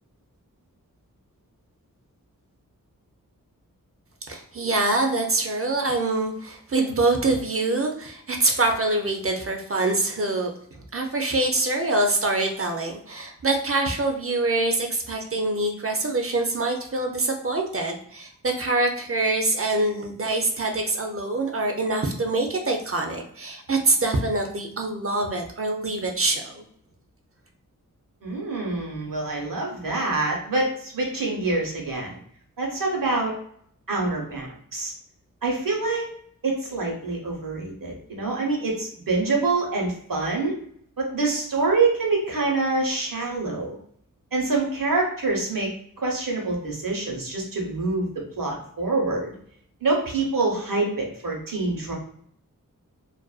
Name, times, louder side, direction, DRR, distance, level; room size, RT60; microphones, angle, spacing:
voice 1, 4.3-26.6, right 2 dB, 45° right, 3 dB, 0.5 m, -25 dB
voice 2, 28.2-32.2 32.6-33.3 33.9-34.9 35.4-36.1 36.4-40.6 41.0-43.8 44.3-45.7 46.0-48.1 48.4-49.3 49.8-51.9, right 3 dB, 75° right, 0 dB, 0.9 m, -26 dB
2.4 x 2.2 x 2.3 m, 0.63 s
wide cardioid pair, 65°, 33 cm